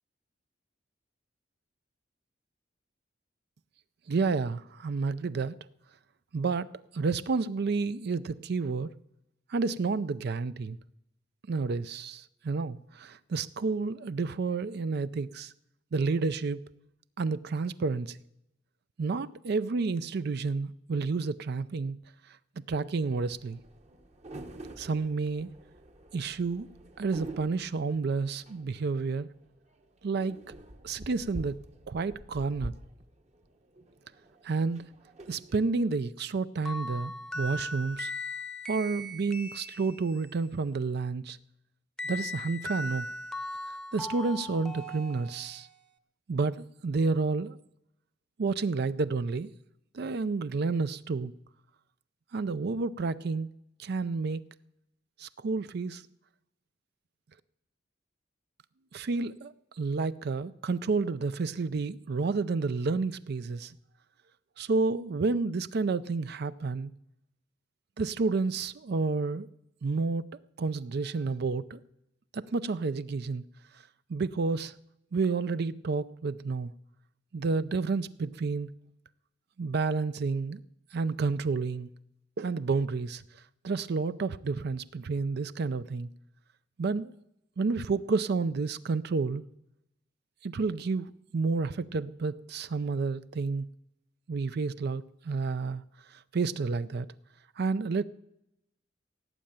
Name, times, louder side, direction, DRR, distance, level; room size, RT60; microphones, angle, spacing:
voice 1, 4.1-5.6 6.3-8.9 9.5-10.8 11.5-15.5 15.9-16.6 17.2-18.2 19.0-22.0 22.7-23.6 24.8-25.5 26.1-26.7 27.0-29.3 30.0-30.4 30.8-31.6 31.9-32.7 34.4-34.9 35.3-38.1 38.7-41.4 42.0-43.1 43.7-45.7 46.3-47.6 48.4-49.5 49.9-51.3 52.3-53.5 53.8-54.4 55.2-56.0 58.9-63.7 64.6-66.9 68.0-69.5 69.8-70.3 70.6-71.8 72.3-73.4 74.1-74.7 75.1-76.7 77.3-78.7 79.6-80.6 80.9-81.9 82.4-83.2 83.6-86.1 86.8-87.1 87.6-89.4 90.4-93.7 94.3-95.8 96.1-97.1 97.6-98.0, right 4 dB, 55° right, 0.4 m, -30 dB
sound 1, 23.0-35.9, right 1 dB, 35° right, 1.0 m, -47 dB
sound 2, 36.7-40.4 42.0-45.8, left 1 dB, 5° left, 0.8 m, -38 dB
17.5 x 7.6 x 8.8 m
head